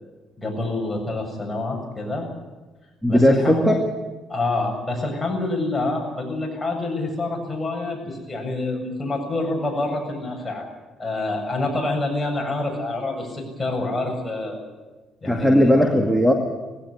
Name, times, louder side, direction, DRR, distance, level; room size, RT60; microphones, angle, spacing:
voice 1, 0.4-2.3 3.1-3.7 4.3-10.7 11.0-14.6 15.2-15.7, left 2 dB, 15° left, 1 dB, 7.4 m, -27 dB
voice 2, 3.0-3.8 15.3-16.3, equal, ahead, 3 dB, 2.2 m, -17 dB
19.0 x 16.5 x 10.0 m, 1.2 s
cardioid pair, 105°, 0 cm